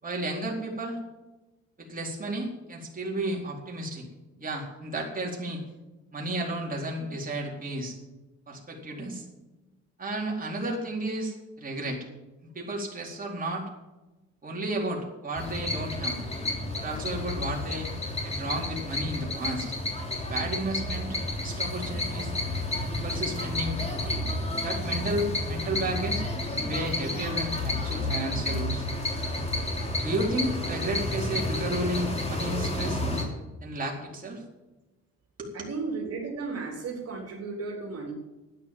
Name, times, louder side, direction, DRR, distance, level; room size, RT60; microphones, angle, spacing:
voice 1, 0.0-1.0 1.8-4.1 4.4-5.6 6.1-8.0 8.5-9.2 10.0-12.0 12.4-13.7 14.4-16.2 16.7-17.9 18.2-19.7 20.2-22.3 22.9-23.8 24.1-24.2 24.6-26.2 26.5-28.8 30.0-33.0 33.6-34.4 35.4-35.7, right 1 dB, 30° right, -2 dB, 4.4 m, -33 dB
sound 1, 15.3-33.2, left 1 dB, 20° left, 3.5 m, -31 dB
voice 2, 35.5-38.1, right 4 dB, 55° right, -1 dB, 3.8 m, -34 dB
12.5 x 10.0 x 7.6 m, 1.1 s
cardioid pair, 90°, 30 cm